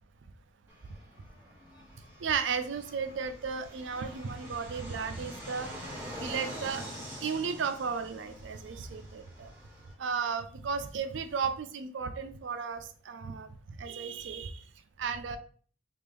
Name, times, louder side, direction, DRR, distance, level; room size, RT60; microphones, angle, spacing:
Fixed-wing aircraft airplane, 0.7-9.9, equal, 10° right, 1.3 m, -45 dB
voice 1, 2.2-5.9 6.2-6.8 7.2-9.5 10.0-14.6 15.0-15.4, right 6 dB, 65° right, 9 dB, 0.4 m, -34 dB
3.3 x 2.5 x 3.4 m, 0.43 s
head